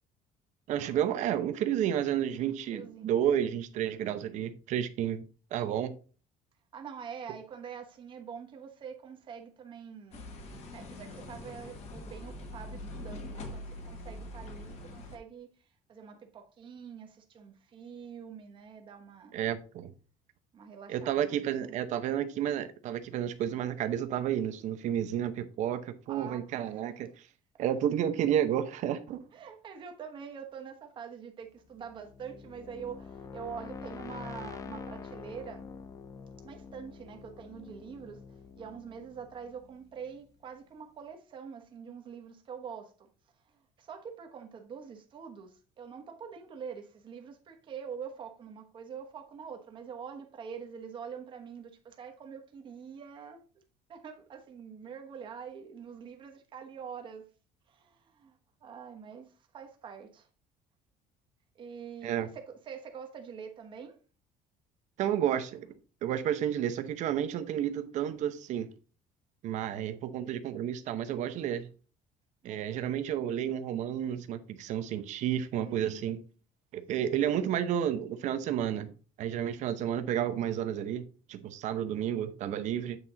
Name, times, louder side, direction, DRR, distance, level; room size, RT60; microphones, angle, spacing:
voice 1, 0.7-5.2 5.5-5.9 19.3-19.9 20.9-27.1 27.6-29.2 62.0-62.3 65.0-65.7 66.0-68.7 69.4-71.7 72.4-76.2 76.7-78.9 79.2-81.0 81.3-83.0, right 10 dB, 50° right, 0.8 m, -31 dB
voice 2, 2.7-3.2 6.7-10.3 10.7-19.4 20.5-21.8 26.1-26.9 27.5-27.6 29.3-35.7 36.4-43.1 43.3-53.4 53.9-57.3 57.7-60.3 61.5-64.0 69.7-70.0 72.4-72.9 75.6-76.2, right 7 dB, 35° right, 1.1 m, -45 dB
sound 1, 10.1-15.2, left 1 dB, 45° left, 1.3 m, -43 dB
sound 2, 31.6-40.4, left 5 dB, 20° left, 0.4 m, -46 dB
8.2 x 4.3 x 3.8 m
cardioid pair, 170°, 15 cm